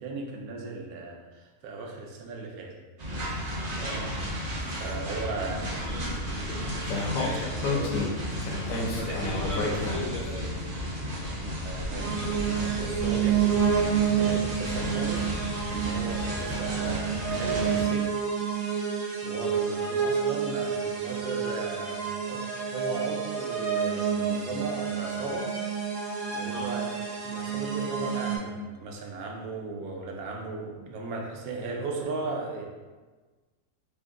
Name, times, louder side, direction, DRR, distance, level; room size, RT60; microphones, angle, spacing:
voice 1, 0.0-2.8 4.8-5.7 9.1-9.2 11.6-18.1 19.2-25.5 26.0-26.9 27.2-32.7, right 3 dB, 85° right, 1 dB, 1.1 m, -37 dB
sound 1, 3.0-17.8, equal, 55° right, 0.4 m, -33 dB
voice 2, 3.8-4.1 5.5-6.6 7.1-8.2 8.7-10.5 26.5-26.7, equal, 60° left, -7 dB, 0.5 m, -37 dB
Speech, 6.9-10.3, left 3 dB, 80° left, 1.0 m, -30 dB
sound 2, 12.0-28.4, right 7 dB, 70° right, 1.3 m, -29 dB
3.3 x 2.2 x 3.5 m, 1.3 s
omnidirectional pair, 1.5 m